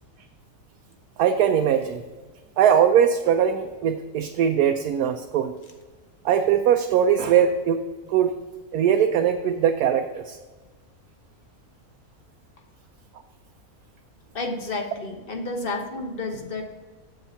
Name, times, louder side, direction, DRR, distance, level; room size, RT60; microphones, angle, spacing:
voice 1, 1.2-2.0 2.6-5.5 6.2-7.8 8.1-8.3 8.7-10.4, right 8 dB, 85° right, 5 dB, 1.1 m, -20 dB
voice 2, 14.3-16.6, left 2 dB, 40° left, 4 dB, 1.1 m, -31 dB
7.4 x 7.0 x 5.6 m, 1.3 s
omnidirectional pair, 1.6 m